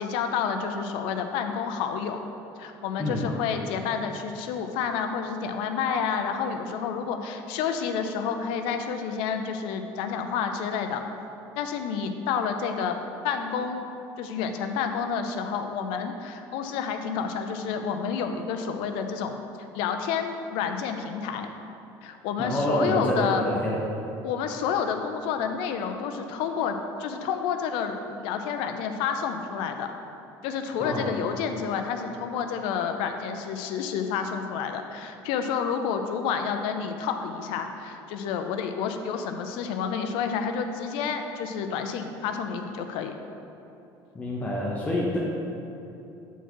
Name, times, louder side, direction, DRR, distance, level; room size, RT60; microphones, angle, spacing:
voice 1, 0.0-2.2 2.6-11.0 11.6-13.0 13.2-13.9 14.2-19.4 19.7-21.5 22.0-23.4 24.2-29.9 30.4-43.2, left 6 dB, 80° left, 6 dB, 0.5 m, -29 dB
voice 2, 22.4-23.8 30.8-31.1 44.1-45.2, left 1 dB, 15° left, -4 dB, 0.8 m, -27 dB
7.9 x 4.6 x 4.5 m, 2.9 s
cardioid pair, 135°, 9 cm